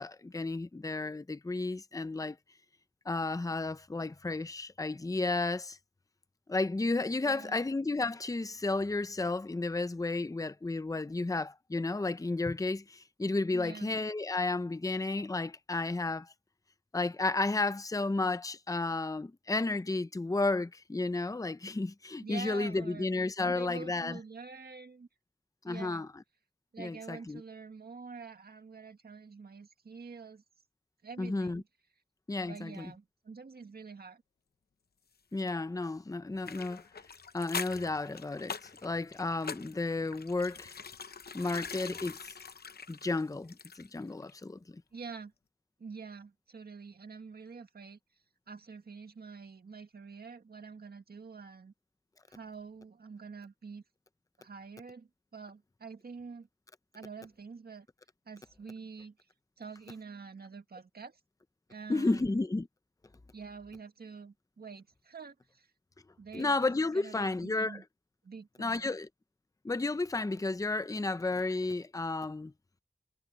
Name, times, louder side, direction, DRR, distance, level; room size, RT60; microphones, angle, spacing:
voice 1, 0.0-2.4 3.1-5.8 6.5-16.3 16.9-24.2 25.6-26.1 26.8-27.4 31.2-31.6 32.3-32.9 35.3-36.8 37.3-40.7 41.3-42.2 42.9-44.8 61.9-62.7 66.3-67.8 68.6-69.1 69.6-72.5, left 3 dB, 20° left, 0.6 m, -32 dB
voice 2, 7.2-7.6 13.5-13.9 22.2-23.1 23.4-25.1 25.7-26.1 26.7-30.4 31.0-31.6 32.5-34.2 44.9-45.3 45.8-48.0 48.5-51.7 52.3-53.8 54.4-56.5 56.9-57.9 58.3-59.2 59.6-61.2 61.7-62.3 63.3-65.7 66.2-66.5 66.9-67.8 68.2-69.0, right 5 dB, 80° right, 1.9 m, -47 dB
sound 1, 36.4-44.0 44.3-44.4, left 5 dB, 85° left, 0.8 m, -43 dB
wide cardioid pair, 80°, 16 cm